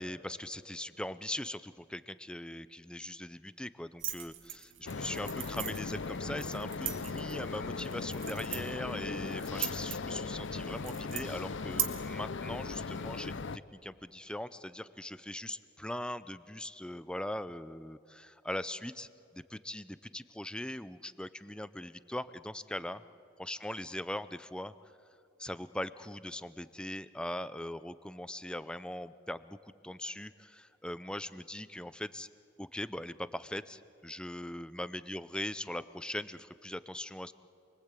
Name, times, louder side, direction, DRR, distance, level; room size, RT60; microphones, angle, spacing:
voice 1, 0.0-23.0 23.4-24.7 25.4-29.6 29.8-32.3 32.6-37.3, left 1 dB, 5° left, 14 dB, 0.5 m, -40 dB
sound 1, 4.0-11.8, right 11 dB, 80° right, 1.8 m, -40 dB
sound 2, 4.9-13.6, left 4 dB, 70° left, 0.7 m, -38 dB
28.5 x 22.0 x 8.3 m, 2.8 s
head